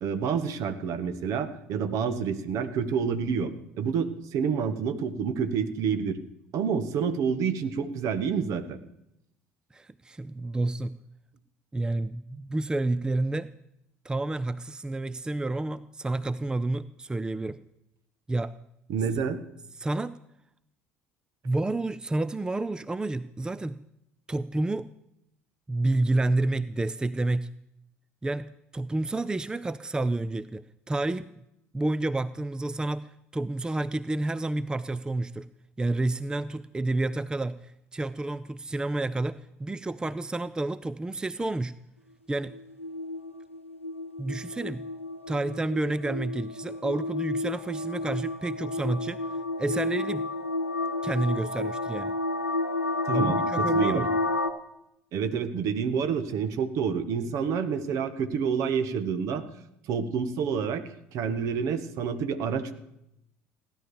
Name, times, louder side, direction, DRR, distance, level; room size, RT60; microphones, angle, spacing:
voice 1, 0.0-6.2 6.5-8.8 18.9-19.4 53.0-54.1 55.1-59.4 59.9-60.8 61.1-62.7, right 6 dB, 55° right, 11 dB, 1.5 m, -28 dB
voice 2, 9.7-11.0 11.7-13.5 14.0-17.6 18.3-18.5 19.8-20.1 21.4-23.8 24.3-24.9 25.7-27.5 28.2-31.3 31.7-35.5 35.8-41.7 42.3-42.5 44.2-44.9 45.3-49.2 49.6-50.3 51.0-52.1 53.1-54.1, right 2 dB, 10° right, 16 dB, 0.5 m, -29 dB
sound 1, 42.5-54.5, left 2 dB, 85° left, 1.0 m, -31 dB
16.5 x 11.0 x 7.0 m, 0.82 s
figure-of-eight pair, 60°, 7 cm